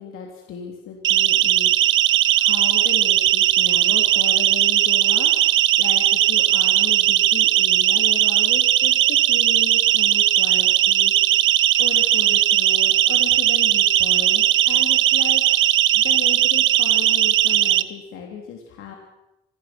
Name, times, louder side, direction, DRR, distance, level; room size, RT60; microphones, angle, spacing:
voice 1, 0.0-11.1 11.8-15.5 15.9-18.9, left 8 dB, 80° left, 1 dB, 3.5 m, -36 dB
Siren, 1.0-17.8, right 12 dB, 70° right, 1.2 m, -18 dB
27.0 x 20.0 x 6.2 m, 0.94 s
cardioid pair, 105°, 21 cm